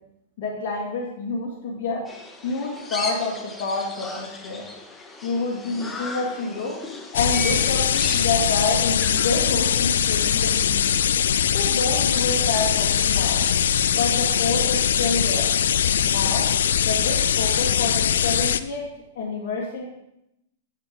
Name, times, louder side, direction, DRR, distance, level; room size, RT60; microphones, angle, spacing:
voice 1, 0.4-2.1 2.4-4.7 5.2-6.8 7.1-10.8 11.5-13.4 13.9-15.5 16.0-16.5 16.8-18.9 19.1-19.9, left 3 dB, 55° left, -4 dB, 1.7 m, -28 dB
sound 1, 2.1-9.3, left 2 dB, 15° left, 1.0 m, -36 dB
sound 2, 7.1-18.6, left 8 dB, 75° left, 0.4 m, -21 dB
8.2 x 7.4 x 3.5 m, 0.82 s
hypercardioid pair, 110°, 0 cm